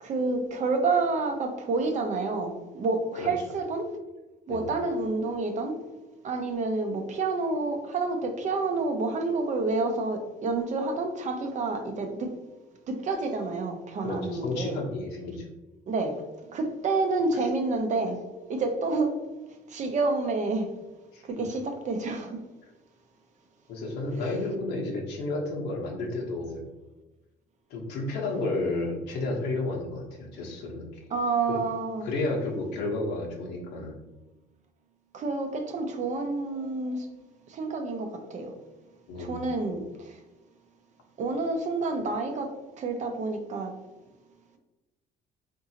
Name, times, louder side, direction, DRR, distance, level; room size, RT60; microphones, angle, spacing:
voice 1, 0.0-3.9 4.5-5.8 6.2-12.3 12.9-14.8 15.9-16.2 16.5-18.2 18.5-19.1 19.7-20.7 21.2-22.4 24.2-24.3 31.1-32.1 35.1-37.1 37.5-38.5 39.2-40.2 41.2-43.8, right 3 dB, 45° right, 5 dB, 0.6 m, -29 dB
voice 2, 14.0-15.4 21.1-21.4 23.7-26.6 27.7-31.0 31.5-31.6 32.0-34.0 39.1-39.5, left 2 dB, 80° left, -1 dB, 1.0 m, -32 dB
3.7 x 2.7 x 2.8 m, 1.1 s
cardioid pair, 110°, 17 cm